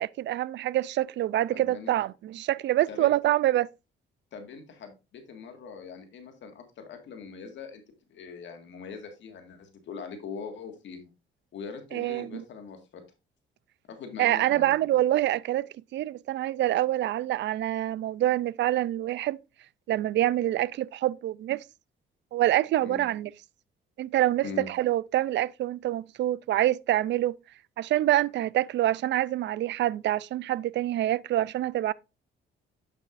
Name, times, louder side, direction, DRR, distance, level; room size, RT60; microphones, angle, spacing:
voice 1, 0.0-3.7 11.9-12.4 14.2-19.4 19.9-21.6 22.3-23.3 24.0-27.3 27.8-31.9, right 14 dB, 65° right, 0.4 m, -26 dB
voice 2, 1.5-1.9 2.9-3.1 4.3-7.8 8.1-11.1 11.5-13.0 13.9-14.9 22.8-23.1 24.4-24.7, left 5 dB, 70° left, 1.8 m, -42 dB
8.9 x 6.8 x 2.5 m
cardioid pair, 90°, 20 cm